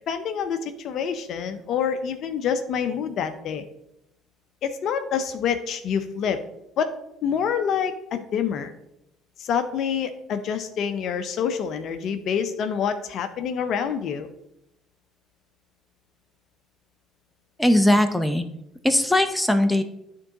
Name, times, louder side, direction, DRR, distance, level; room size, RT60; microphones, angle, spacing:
voice 1, 0.1-3.6 4.6-6.4 6.8-6.9 7.2-8.7 9.4-14.3, left 7 dB, 60° left, 9 dB, 0.7 m, -27 dB
voice 2, 17.6-18.4 18.8-19.8, left 1 dB, 5° left, 8 dB, 0.7 m, -19 dB
11.0 x 3.7 x 2.9 m, 0.81 s
hypercardioid pair, 55°, 0 cm